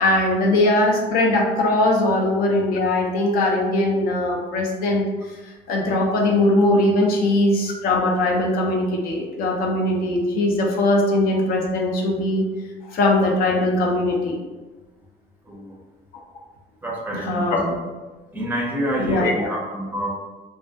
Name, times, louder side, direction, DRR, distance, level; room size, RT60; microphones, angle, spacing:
voice 1, 0.0-12.5 12.8-14.4 17.1-17.8 19.0-19.5, left 1 dB, 70° left, -1 dB, 0.5 m, -20 dB
voice 2, 16.8-17.6 18.3-20.1, equal, 10° right, -3 dB, 0.5 m, -27 dB
2.2 x 2.2 x 2.6 m, 1.2 s
cardioid pair, 120°, 16 cm